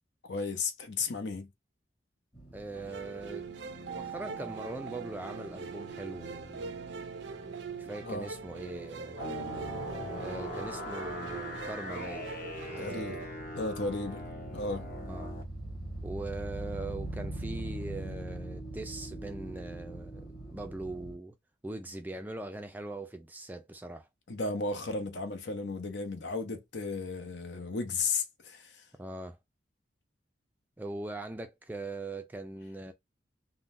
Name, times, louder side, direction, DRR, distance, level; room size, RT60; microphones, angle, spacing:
voice 1, 0.2-1.5 8.0-8.3 12.8-14.2 14.5-14.9 24.3-28.8, left 3 dB, 75° left, 0.7 m, -34 dB
sound 1, 2.3-21.2, right 2 dB, 30° left, 1.3 m, -44 dB
voice 2, 2.5-3.5 3.9-6.8 7.8-9.3 10.2-12.3 12.7-13.3 15.0-15.3 16.0-20.3 20.5-21.3 21.6-24.1 29.0-29.4 30.8-32.9, right 2 dB, 10° right, 0.3 m, -41 dB
sound 2, 2.7-13.3, right 5 dB, 75° right, 0.5 m, -42 dB
sound 3, 9.2-15.4, left 2 dB, 50° left, 1.0 m, -41 dB
3.6 x 2.2 x 2.5 m
head